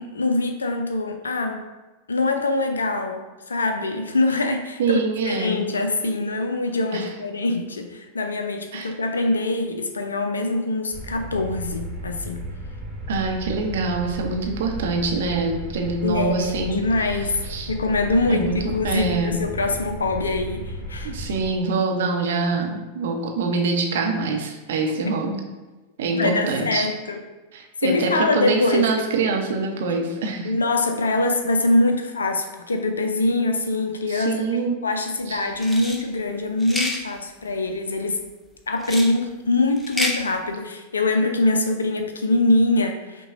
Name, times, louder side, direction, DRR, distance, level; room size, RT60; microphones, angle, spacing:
voice 1, 0.0-1.6 2.1-5.0 5.2-12.5 16.0-17.4 17.7-21.1 25.1-25.2 26.1-27.2 27.8-28.9 30.4-38.2 38.7-43.3, left 2 dB, 75° left, 6 dB, 0.4 m, -23 dB
voice 2, 4.8-5.6 6.9-7.1 8.7-8.9 13.1-16.8 17.4-17.7 18.3-18.6 18.8-19.4 21.0-25.4 26.0-26.9 27.5-30.5 34.1-34.7 35.3-35.5, right 4 dB, 60° right, 2 dB, 0.6 m, -25 dB
sound 1, 10.9-21.5, equal, 10° right, 1.2 m, -34 dB
sound 2, 35.6-36.0 36.6-37.0 38.8-39.1 39.8-40.2, left 1 dB, 10° left, 0.6 m, -27 dB
5.8 x 2.2 x 3.6 m, 1.1 s
figure-of-eight pair, 90°, 0 cm